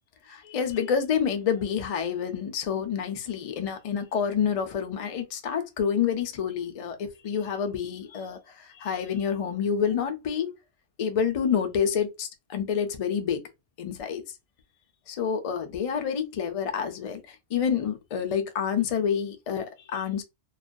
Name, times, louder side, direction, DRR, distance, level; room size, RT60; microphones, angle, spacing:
voice 1, 0.3-10.5 11.0-13.5 13.8-14.2 15.1-20.2, left 7 dB, 65° left, 0.3 m, -28 dB
2.4 x 2.2 x 2.5 m
omnidirectional pair, 1.2 m